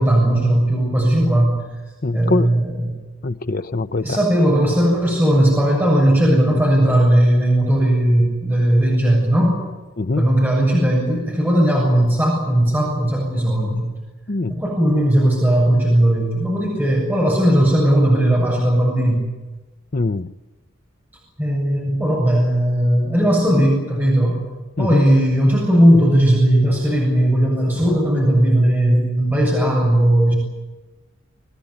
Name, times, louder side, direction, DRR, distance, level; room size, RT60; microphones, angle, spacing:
voice 1, 0.0-1.6 2.1-2.9 4.0-9.5 10.2-13.9 14.5-19.2 21.4-24.4 24.8-30.3, right 1 dB, 10° right, -3 dB, 7.3 m, -17 dB
voice 2, 2.0-2.5 3.2-4.2 10.0-10.2 14.3-14.6 19.9-20.3 24.8-25.0, left 2 dB, 45° left, 10 dB, 0.8 m, -22 dB
25.5 x 18.5 x 9.8 m, 1.2 s
head